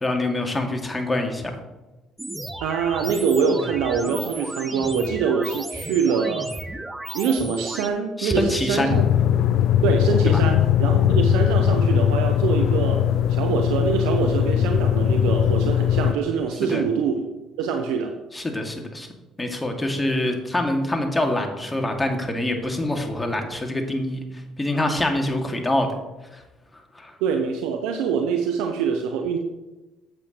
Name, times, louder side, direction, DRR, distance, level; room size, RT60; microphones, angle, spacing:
voice 1, 0.0-1.5 8.2-8.9 10.3-10.4 16.7-16.9 18.3-19.1 19.4-26.0 26.3-26.4 26.9-27.1, left 1 dB, 15° left, 3 dB, 2.0 m, -25 dB
sound 1, 2.2-7.9, right 1 dB, 10° right, 0.8 m, -34 dB
voice 2, 2.6-6.5 7.1-9.0 9.8-13.0 13.3-17.3 17.6-18.1 27.2-29.4, right 6 dB, 80° right, 4 dB, 0.7 m, -24 dB
sound 2, 8.9-16.1, left 10 dB, 65° left, 0.4 m, -20 dB
12.0 x 7.8 x 3.0 m, 1.1 s
hypercardioid pair, 60°, 0 cm